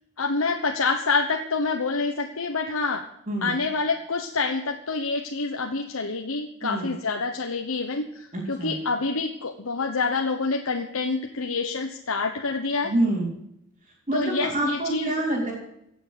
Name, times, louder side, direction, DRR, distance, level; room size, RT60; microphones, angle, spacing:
voice 1, 0.2-3.0 3.4-12.9 14.1-15.1, left 4 dB, 90° left, 3 dB, 1.1 m, -27 dB
voice 2, 8.3-8.7 12.8-13.3 14.1-15.5, right 1 dB, 35° right, -6 dB, 3.9 m, -26 dB
16.5 x 7.2 x 8.2 m, 0.78 s
head